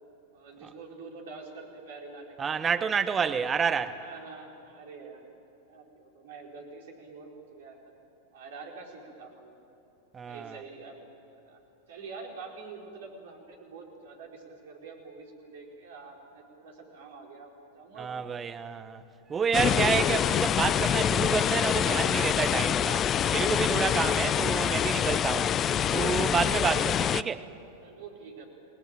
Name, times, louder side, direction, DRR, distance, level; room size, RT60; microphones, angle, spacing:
voice 1, 0.3-3.0 4.0-5.3 5.7-7.8 8.3-9.6 10.3-11.6 11.9-18.2 27.8-28.5, right 4 dB, 55° right, 4.7 m, -46 dB
voice 2, 2.4-4.0 10.1-10.6 18.0-19.0 19.3-25.5 25.9-27.4, right 6 dB, 20° right, 1.2 m, -29 dB
sound 1, 19.5-27.2, left 9 dB, 25° left, 0.5 m, -26 dB
29.0 x 19.0 x 8.9 m
figure-of-eight pair, 90°, 0 cm